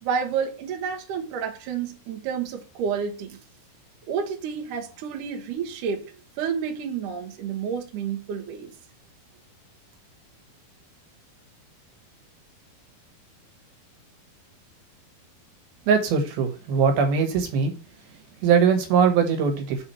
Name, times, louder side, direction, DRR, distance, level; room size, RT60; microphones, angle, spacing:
voice 1, 0.0-3.4 4.1-6.1 6.4-8.7, right 7 dB, 65° right, 2.5 m, -30 dB
voice 2, 15.9-17.7 18.4-19.9, right 6 dB, 85° right, 3.2 m, -21 dB
6.1 x 4.3 x 5.8 m
omnidirectional pair, 4.3 m